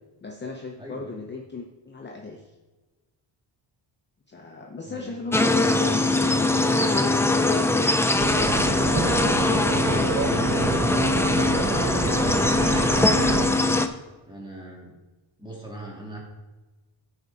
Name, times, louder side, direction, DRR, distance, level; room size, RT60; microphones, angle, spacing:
voice 1, 0.2-2.5 4.3-8.0 8.3-10.7 11.2-12.5, left 3 dB, 20° left, 1 dB, 0.8 m, -38 dB
voice 2, 0.8-1.2 4.9-5.1 14.3-15.0 15.4-16.2, right 1 dB, 10° right, -3 dB, 2.6 m, -40 dB
sound 1, 5.3-13.9, left 2 dB, 5° left, 0.3 m, -22 dB
sound 2, 8.2-13.5, right 4 dB, 30° right, 0.7 m, -28 dB
14.0 x 4.7 x 4.1 m, 1.2 s
cardioid pair, 125°, 48 cm